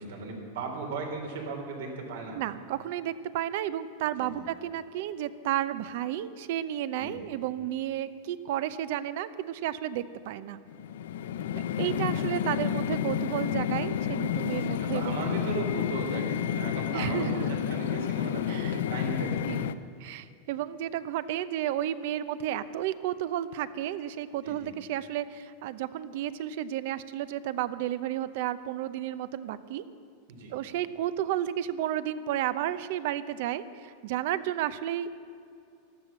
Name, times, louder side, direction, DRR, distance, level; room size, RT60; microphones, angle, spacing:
voice 1, 0.0-2.4 4.2-4.4 7.0-7.2 14.6-19.5 24.4-24.7 30.3-30.5, right 3 dB, 75° right, 2 dB, 3.7 m, -37 dB
voice 2, 2.3-10.6 11.8-15.2 16.9-17.4 18.5-18.8 19.2-19.7 20.0-29.8 30.5-35.1, right 12 dB, 50° right, 15 dB, 0.6 m, -32 dB
sound 1, 10.7-19.7, left 9 dB, 80° left, 0.6 m, -30 dB
13.0 x 12.5 x 7.3 m, 2.5 s
supercardioid pair, 175°, 0 cm